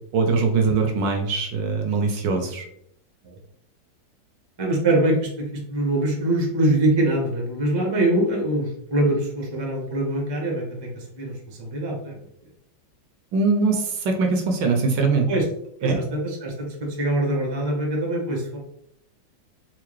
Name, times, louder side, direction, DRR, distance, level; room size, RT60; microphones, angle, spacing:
voice 1, 0.1-2.7 13.3-15.3 15.8-16.0, right 4 dB, 75° right, 3 dB, 1.2 m, -22 dB
voice 2, 4.6-12.1 15.3-15.4 15.8-18.6, right 1 dB, 30° right, -2 dB, 0.4 m, -24 dB
4.5 x 2.1 x 3.1 m, 0.70 s
omnidirectional pair, 2.2 m